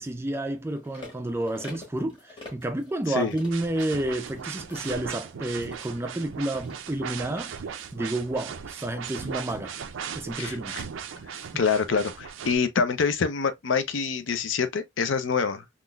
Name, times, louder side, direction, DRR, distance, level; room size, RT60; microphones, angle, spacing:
voice 1, 0.0-7.5 7.9-9.7 10.2-10.9 11.4-11.5, right 1 dB, 10° right, 0.3 m, -30 dB
sound 1, 0.8-8.1 8.5-8.6, left 2 dB, 25° left, 1.3 m, -49 dB
sound 2, 3.5-12.6, right 7 dB, 80° right, 0.4 m, -38 dB
voice 2, 10.4-10.8 11.5-15.6, left 5 dB, 75° left, 0.5 m, -26 dB
3.7 x 2.4 x 2.2 m
head